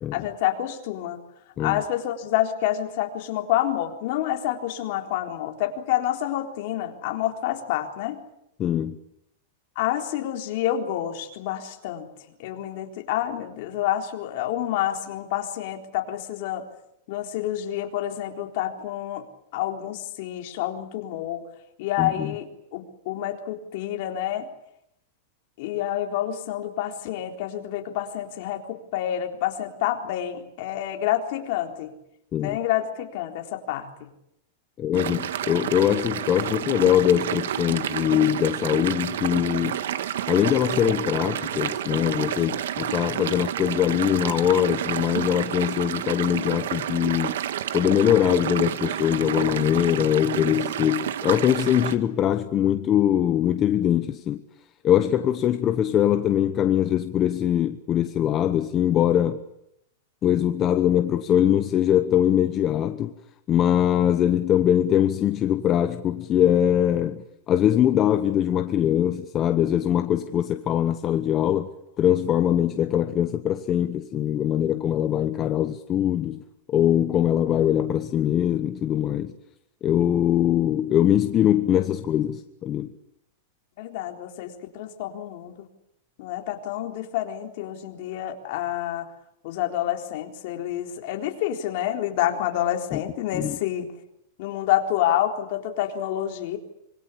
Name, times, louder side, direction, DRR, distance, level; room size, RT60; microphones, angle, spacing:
voice 1, 0.1-1.2 1.6-8.2 9.8-12.1 12.4-16.6 17.1-19.3 19.5-21.4 21.8-24.5 25.6-32.0 32.4-34.1 83.8-85.6 86.2-89.1 89.4-93.9 94.4-96.6, left 12 dB, 50° left, 3.9 m, -28 dB
voice 2, 8.6-9.0 22.0-22.3 32.3-32.6 34.8-39.8 40.3-47.3 47.7-54.4 54.8-59.4 60.2-63.1 63.5-71.7 72.0-76.4 76.7-79.3 79.8-82.9 92.9-93.0 93.3-93.6, left 10 dB, 25° left, 1.0 m, -22 dB
sound 1, 34.9-52.0, right 10 dB, 80° right, 1.7 m, -30 dB
26.0 x 24.5 x 8.5 m
supercardioid pair, 165°, 0 cm